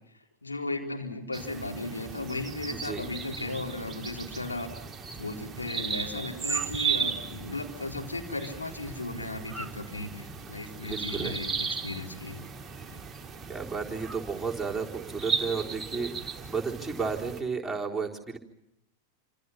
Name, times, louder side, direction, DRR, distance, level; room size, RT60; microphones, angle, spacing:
voice 1, 0.4-4.7 5.2-12.5 12.8-13.0, left 2 dB, 80° left, 0 dB, 4.2 m, -36 dB
sound 1, 1.3-17.4, right 6 dB, 15° right, 1.9 m, -36 dB
voice 2, 2.7-3.1 10.8-11.4 13.5-18.4, right 5 dB, ahead, -4 dB, 4.0 m, -33 dB
28.0 x 27.0 x 5.9 m, 0.81 s
figure-of-eight pair, 90°, 0 cm